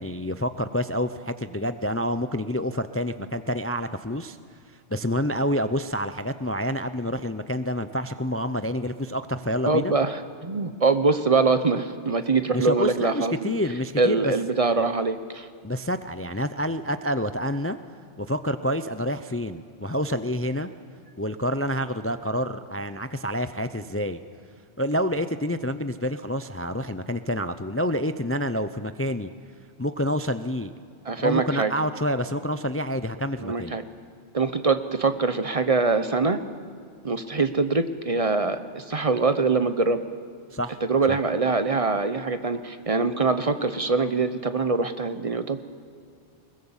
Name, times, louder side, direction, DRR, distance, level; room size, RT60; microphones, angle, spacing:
voice 1, 0.0-4.4 4.9-9.9 12.5-14.2 15.6-17.8 18.2-20.7 21.2-24.2 24.8-29.3 29.8-30.7 31.2-33.7 40.5-40.8 41.1-41.2, equal, 20° left, 11 dB, 0.3 m, -28 dB
voice 2, 9.6-13.5 14.0-15.5 31.0-31.7 33.4-33.8 34.3-36.4 37.0-40.0 40.8-45.6, right 3 dB, 35° right, 10 dB, 0.8 m, -23 dB
22.0 x 20.0 x 7.3 m, 2.3 s
omnidirectional pair, 1.2 m